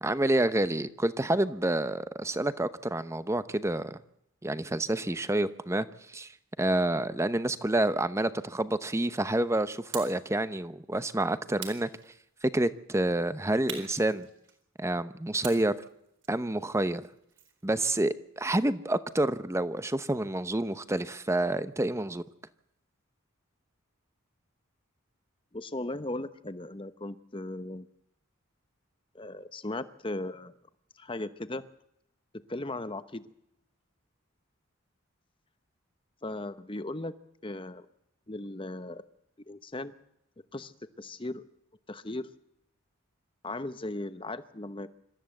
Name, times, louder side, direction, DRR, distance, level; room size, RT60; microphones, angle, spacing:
voice 1, 0.0-4.0 4.4-6.3 6.6-11.9 12.4-14.3 14.8-15.8 16.3-17.1 17.6-22.2, right 1 dB, 15° right, 0.8 m, -28 dB
sound 1, 9.9-10.3 11.6-12.5 13.7-14.8 15.4-17.6, right 7 dB, 60° right, 4.1 m, -44 dB
voice 2, 25.5-27.9 29.1-30.5 31.0-31.6 32.5-33.2 36.2-37.1 37.4-37.9 38.3-39.0 39.5-39.9 40.5-41.4 41.9-42.3 43.4-44.9, left 2 dB, 25° left, 0.9 m, -37 dB
26.0 x 13.5 x 7.8 m
head